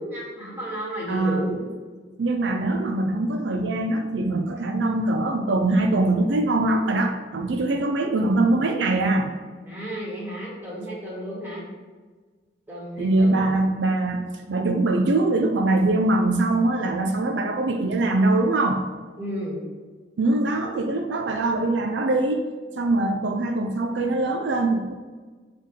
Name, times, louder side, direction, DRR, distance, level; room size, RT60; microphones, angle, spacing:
voice 1, 0.0-1.6 9.7-11.6 12.7-13.5 19.2-19.6, equal, 10° right, -7 dB, 2.0 m, -32 dB
voice 2, 1.1-1.6 2.2-9.3 13.0-18.8 20.2-22.5 22.8-24.9, right 2 dB, 80° right, 5 dB, 0.5 m, -22 dB
6.6 x 3.6 x 4.8 m, 1.4 s
head